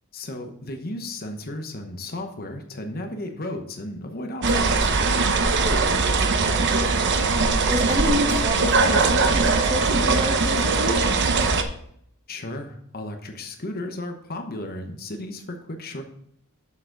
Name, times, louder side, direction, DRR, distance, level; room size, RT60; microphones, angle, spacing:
voice 1, 0.1-4.9 12.3-16.0, left 1 dB, 45° left, 5 dB, 1.0 m, -34 dB
sound 1, 4.4-11.6, right 4 dB, 55° right, 0.8 m, -21 dB
voice 2, 6.3-6.6 7.6-11.0, left 1 dB, 30° right, 1 dB, 1.6 m, -28 dB
7.3 x 6.6 x 3.9 m, 0.70 s
head